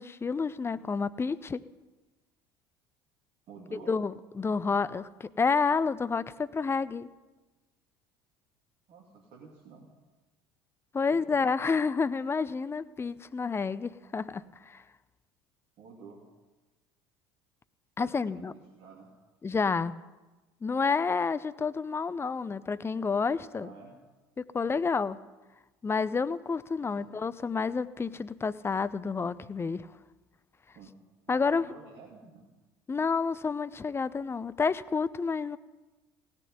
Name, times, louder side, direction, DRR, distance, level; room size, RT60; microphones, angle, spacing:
voice 1, 0.0-1.6 3.9-7.1 10.9-14.8 18.0-18.5 19.4-19.9 20.6-23.7 24.4-25.2 25.8-29.9 31.3-31.6 32.9-35.6, left 5 dB, 20° left, 16 dB, 0.6 m, -29 dB
voice 2, 3.5-3.9 8.9-9.9 11.1-11.4 15.8-16.2 18.0-19.1 23.6-24.0 27.0-27.1 30.7-30.9 31.3-32.5, right 5 dB, 50° right, -2 dB, 2.5 m, -50 dB
17.0 x 6.7 x 9.5 m, 1.2 s
figure-of-eight pair, 65°, 12 cm